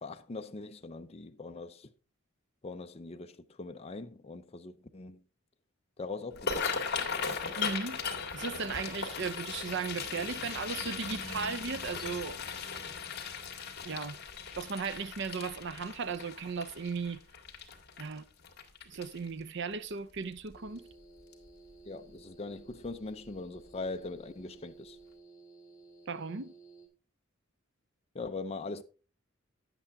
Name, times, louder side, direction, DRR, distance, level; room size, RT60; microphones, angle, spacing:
voice 1, 0.0-1.9 2.6-5.2 6.0-7.1 21.8-25.0 28.1-28.8, left 3 dB, 30° left, 0.5 m, -41 dB
sound 1, 6.3-19.4 19.9-20.2 20.5-20.9 21.3-21.5 22.7-22.9 23.2-23.4 23.8-23.9, left 5 dB, 55° left, 1.9 m, -38 dB
voice 2, 7.5-8.0 8.3-12.4 13.8-14.2 14.6-17.2 18.0-18.2 18.9-20.8 26.1-26.5, right 5 dB, 60° right, 0.6 m, -36 dB
sound 2, 20.5-26.9, right 3 dB, 15° left, 2.8 m, -55 dB
9.9 x 8.3 x 3.5 m
head